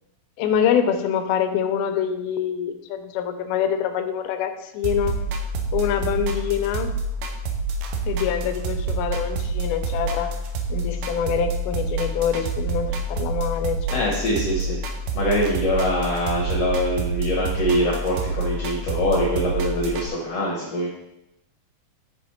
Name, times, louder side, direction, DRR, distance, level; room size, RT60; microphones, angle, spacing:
voice 1, 0.4-5.2 5.7-6.9 8.1-10.3 10.7-14.2, left 8 dB, 85° left, 7 dB, 2.5 m, -25 dB
sound 1, 4.8-20.1, right 2 dB, 75° right, 2.1 m, -27 dB
voice 2, 13.9-14.8 15.1-20.9, equal, 60° left, -4 dB, 1.9 m, -24 dB
6.3 x 5.4 x 4.4 m, 0.86 s
omnidirectional pair, 4.3 m